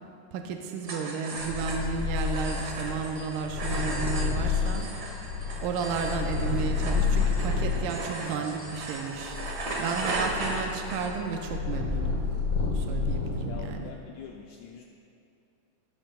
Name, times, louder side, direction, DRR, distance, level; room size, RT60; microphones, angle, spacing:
voice 1, 0.3-4.9 5.6-12.2 12.6-13.9, right 6 dB, 80° right, 3 dB, 2.1 m, -33 dB
sound 1, 0.8-11.4, right 2 dB, 45° right, 1.3 m, -36 dB
Purr, 1.4-7.9 8.6-13.8, left 5 dB, 35° left, 2.5 m, -30 dB
sound 2, 3.3-9.2, left 3 dB, 55° left, 2.0 m, -48 dB
voice 2, 13.4-14.8, left 7 dB, 85° left, 2 dB, 1.6 m, -44 dB
15.5 x 13.0 x 2.3 m, 2.6 s
omnidirectional pair, 3.9 m